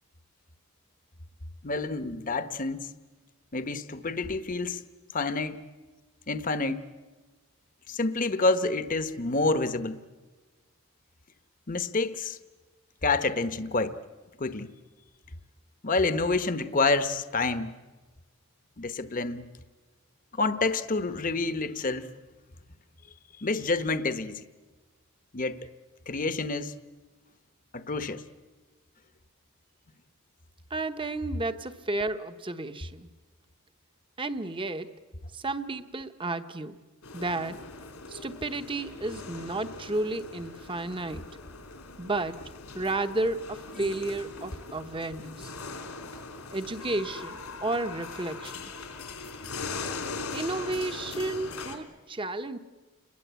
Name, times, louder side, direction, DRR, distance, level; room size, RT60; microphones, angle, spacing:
voice 1, 1.6-2.9 3.5-4.8 5.1-5.6 6.3-6.9 7.9-10.0 11.7-12.4 13.0-14.0 14.4-14.7 15.8-17.7 18.8-19.5 20.3-22.1 23.4-24.4 25.3-25.6 26.1-26.7 27.7-28.2 43.8-43.9, left 3 dB, 40° left, 11 dB, 1.0 m, -28 dB
voice 2, 30.7-33.1 34.2-35.0 35.3-36.8 37.1-37.6 38.1-41.3 42.0-42.4 42.7-45.5 46.5-48.6 50.3-52.6, right 2 dB, 25° right, 10 dB, 1.0 m, -32 dB
sound 1, 37.0-51.8, left 3 dB, 85° left, 3.5 m, -40 dB
29.5 x 21.5 x 8.2 m, 1.3 s
head